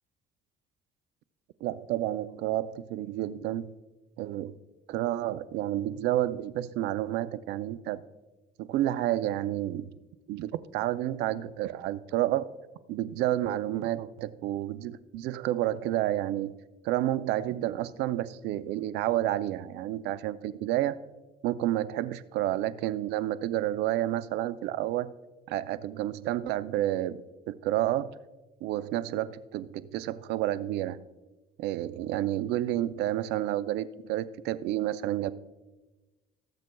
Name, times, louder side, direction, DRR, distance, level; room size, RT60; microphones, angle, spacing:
voice 1, 1.6-3.7 4.2-4.5 4.9-8.0 8.6-9.9 10.3-12.5 12.9-16.5 16.8-21.0 21.4-25.1 25.5-27.2 27.5-28.1 28.6-31.0 31.6-35.3, right 13 dB, 85° right, 15 dB, 0.5 m, -30 dB
18.5 x 7.6 x 2.2 m, 1.1 s
cardioid pair, 110°, 17 cm